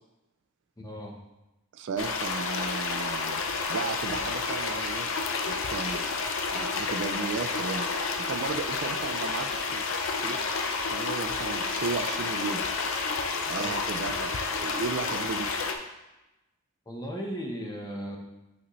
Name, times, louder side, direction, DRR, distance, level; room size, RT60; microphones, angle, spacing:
voice 1, 0.8-1.1 13.6-13.8 16.9-18.2, equal, 15° left, 0 dB, 0.8 m, -36 dB
voice 2, 1.7-3.4 3.7-5.1 5.4-6.0 6.5-7.9 8.3-9.8 10.1-12.6 13.5-15.5, right 4 dB, 55° right, 9 dB, 0.4 m, -35 dB
sound 1, 2.0-15.7, left 4 dB, 65° left, 0.6 m, -30 dB
8.7 x 4.0 x 3.1 m, 0.98 s
head